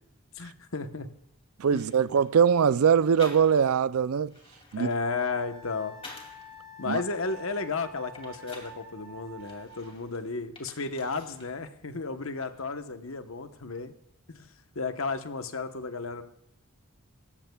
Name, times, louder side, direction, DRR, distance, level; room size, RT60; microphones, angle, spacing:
voice 1, 0.3-1.1 1.7-2.0 4.8-6.0 6.8-13.9 14.3-16.2, left 4 dB, 65° left, 1.1 m, -33 dB
sound 1, 1.6-2.4 3.2-3.8 4.2-6.5 6.9-8.8 9.4-11.5 11.8-12.6, left 3 dB, 25° left, 2.7 m, -50 dB
voice 2, 1.6-4.3 4.7-4.9 6.9-7.0, right 7 dB, 75° right, 0.4 m, -22 dB
Wind instrument woodwind instrument, 5.0-9.9, right 1 dB, 5° left, 5.4 m, -48 dB
19.0 x 14.5 x 2.3 m
head